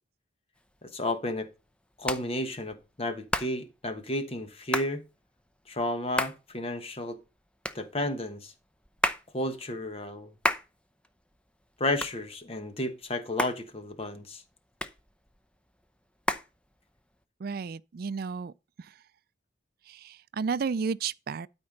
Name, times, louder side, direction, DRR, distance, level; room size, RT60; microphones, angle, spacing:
Hands, 0.6-17.2, left 1 dB, 5° left, 0.6 m, -36 dB
voice 1, 0.8-1.5 2.0-5.0 5.7-7.2 7.7-8.5 9.3-10.3 11.8-14.4, left 1 dB, 30° left, 1.2 m, -32 dB
voice 2, 17.4-19.0 19.8-21.5, right 5 dB, 55° right, 0.4 m, -33 dB
12.5 x 4.4 x 5.2 m
head